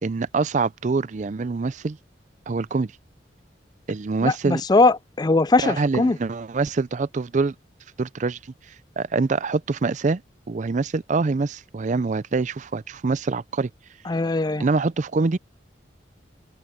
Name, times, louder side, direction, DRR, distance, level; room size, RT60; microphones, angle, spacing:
voice 1, 0.0-2.0 2.5-2.9 3.9-4.6 5.6-7.5 8.0-8.4 9.0-10.2 10.5-13.7 14.6-15.4, right 4 dB, 40° right, 0.5 m, -24 dB
voice 2, 4.2-6.2 14.1-14.6, left 3 dB, 20° left, 0.4 m, -20 dB
open air
head